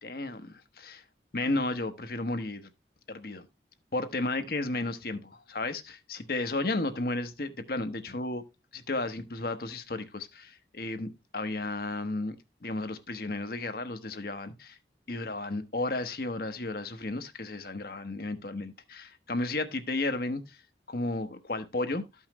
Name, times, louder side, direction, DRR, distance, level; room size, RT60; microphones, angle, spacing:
voice 1, 0.0-1.0 1.3-2.7 3.1-3.5 3.9-8.4 8.7-12.3 12.6-14.8 15.1-20.6 20.9-22.0, left 2 dB, 55° left, 1.0 m, -33 dB
13.5 x 5.6 x 3.0 m
head